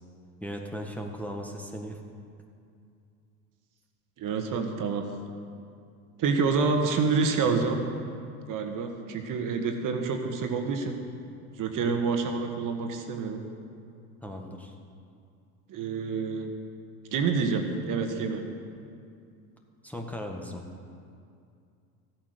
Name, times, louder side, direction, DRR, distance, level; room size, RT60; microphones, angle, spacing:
voice 1, 0.4-2.0 14.2-14.7 19.8-20.6, equal, 5° left, 0 dB, 1.5 m, -37 dB
voice 2, 4.2-5.0 6.2-7.8 8.5-11.0 11.6-13.4 15.7-16.5 17.1-18.4, right 5 dB, 45° right, 4 dB, 1.7 m, -27 dB
14.0 x 8.9 x 6.7 m, 2.4 s
hypercardioid pair, 90°, 43 cm